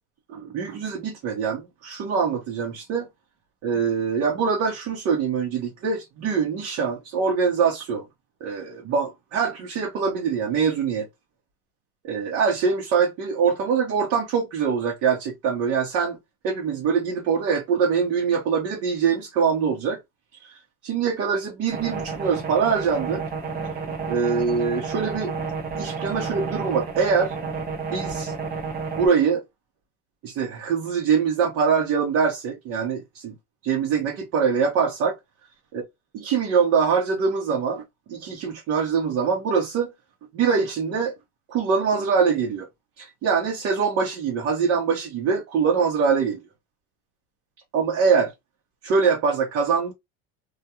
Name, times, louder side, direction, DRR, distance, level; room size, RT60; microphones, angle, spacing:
voice 1, 0.3-3.1 3.6-8.0 8.4-11.1 12.0-16.2 16.4-20.0 20.4-23.2 24.1-25.3 25.8-27.3 27.9-28.3 29.0-29.4 30.2-33.4 33.6-35.2 35.7-35.8 36.1-37.8 38.1-39.9 40.3-41.1 41.5-42.7 43.0-46.4 47.7-48.3 48.8-49.9, right 6 dB, 50° right, 0.9 m, -23 dB
sound 1, 21.7-29.1, right 5 dB, 30° right, 0.7 m, -31 dB
2.3 x 2.3 x 2.8 m
supercardioid pair, 120°, 33 cm